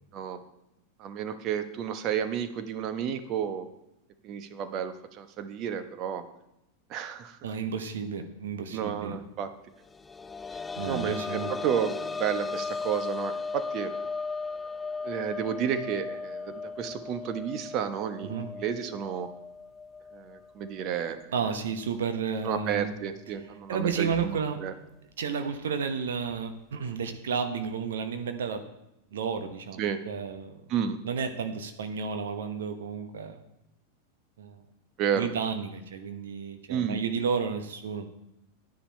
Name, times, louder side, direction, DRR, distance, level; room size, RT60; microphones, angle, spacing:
voice 1, 1.0-3.7 4.2-6.2 6.9-7.4 8.7-9.5 10.9-13.9 15.0-19.3 20.1-21.3 22.4-24.7 29.8-30.0 30.7-31.0 35.0-35.3 36.7-37.0, right 8 dB, 35° right, 9 dB, 1.1 m, -31 dB
voice 2, 7.4-9.2 10.8-11.5 18.2-18.5 21.3-22.9 23.7-24.6 25.2-28.6 29.1-30.6 31.0-33.4 34.4-34.6 35.1-38.1, right 6 dB, 60° right, 7 dB, 1.1 m, -32 dB
sound 1, 9.9-21.3 21.7-21.8 23.3-23.4, left 4 dB, 15° left, 0.3 m, -37 dB
10.5 x 10.0 x 4.3 m, 0.87 s
figure-of-eight pair, 90°, 0 cm